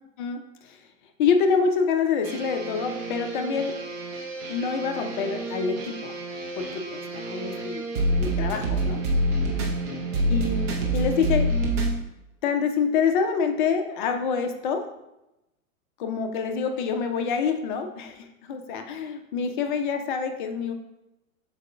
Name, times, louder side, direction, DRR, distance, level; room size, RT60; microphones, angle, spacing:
voice 1, 0.2-0.8 1.2-3.8 4.5-6.1 6.6-9.0 10.3-11.5 12.4-14.8 16.0-20.7, left 6 dB, 35° left, 6 dB, 0.7 m, -26 dB
sound 1, 2.2-12.0, right 1 dB, 15° right, 0.3 m, -28 dB
12.5 x 4.2 x 2.2 m, 0.93 s
figure-of-eight pair, 100°, 42 cm